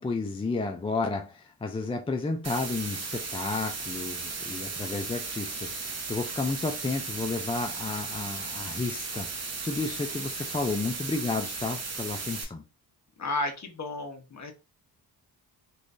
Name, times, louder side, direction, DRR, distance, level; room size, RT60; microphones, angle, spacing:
voice 1, 0.0-12.6, left 3 dB, 15° left, 0.3 m, -32 dB
sound 1, 2.4-12.4, right 4 dB, 40° right, 0.8 m, -36 dB
voice 2, 13.2-14.5, left 2 dB, 40° left, 1.1 m, -32 dB
3.1 x 3.1 x 2.6 m
cardioid pair, 85°, 42 cm